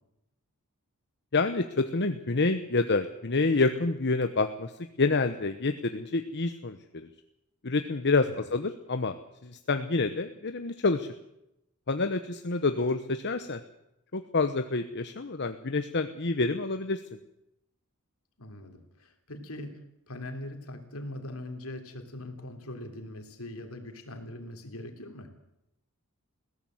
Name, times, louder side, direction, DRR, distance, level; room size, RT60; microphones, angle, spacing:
voice 1, 1.3-4.7 5.0-7.1 7.6-9.1 9.4-11.1 11.9-13.6 14.1-17.0, left 3 dB, 55° left, 8 dB, 1.0 m, -28 dB
voice 2, 18.4-19.8 20.1-25.3, left 1 dB, 70° left, 6 dB, 3.5 m, -41 dB
21.5 x 16.5 x 7.9 m, 0.84 s
head